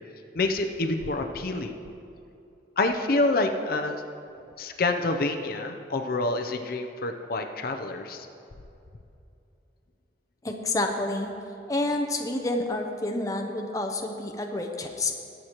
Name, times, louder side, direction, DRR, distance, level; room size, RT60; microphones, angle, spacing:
voice 1, 0.3-1.7 2.8-4.0 4.6-8.3, left 2 dB, 55° left, 5 dB, 0.6 m, -27 dB
voice 2, 10.4-11.3 11.7-15.1, left 2 dB, 20° left, 3 dB, 0.7 m, -29 dB
19.0 x 7.9 x 3.0 m, 2.7 s
head